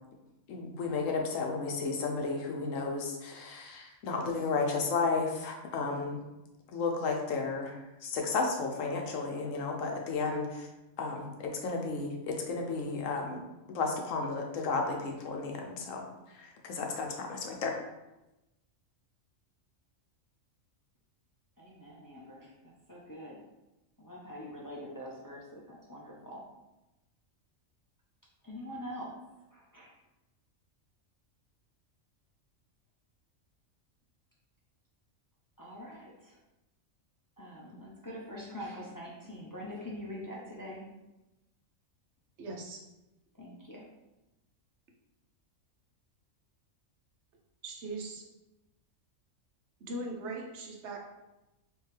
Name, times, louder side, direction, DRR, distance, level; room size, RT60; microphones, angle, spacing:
voice 1, 0.5-6.2 6.7-10.7 11.0-13.4 13.7-17.8, left 4 dB, 75° left, 2 dB, 1.1 m, -33 dB
voice 2, 21.6-23.4 24.0-26.5 28.4-29.2 29.5-29.9 35.6-36.4 37.4-40.8 43.4-43.9, equal, 25° left, -5 dB, 0.4 m, -44 dB
voice 3, 42.4-42.8 47.6-48.2 49.8-51.0, right 2 dB, 65° right, 1 dB, 0.9 m, -39 dB
4.5 x 2.7 x 3.2 m, 0.98 s
omnidirectional pair, 1.4 m